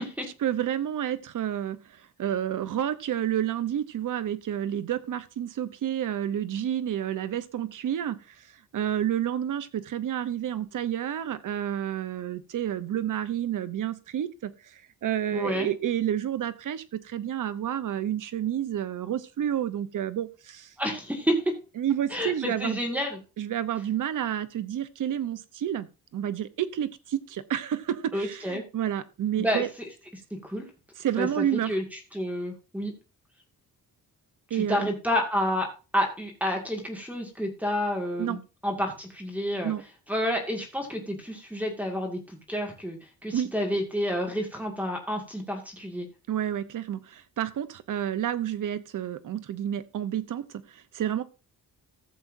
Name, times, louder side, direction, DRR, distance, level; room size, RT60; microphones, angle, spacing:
voice 1, 0.4-8.5 8.7-20.7 21.8-22.8 23.4-25.9 26.1-29.7 31.0-31.8 34.5-34.9 38.2-38.4 39.6-39.8 43.3-43.5 46.3-51.2, right 10 dB, 60° right, 13 dB, 0.8 m, -30 dB
voice 2, 15.3-15.7 20.8-21.4 22.1-23.2 28.1-28.6 29.4-29.6 30.3-30.7 31.2-31.8 32.1-32.9 34.5-35.7 35.9-39.7 40.1-46.1, equal, 5° right, 1 dB, 2.0 m, -29 dB
14.5 x 7.2 x 2.6 m, 0.31 s
wide cardioid pair, 150°, 36 cm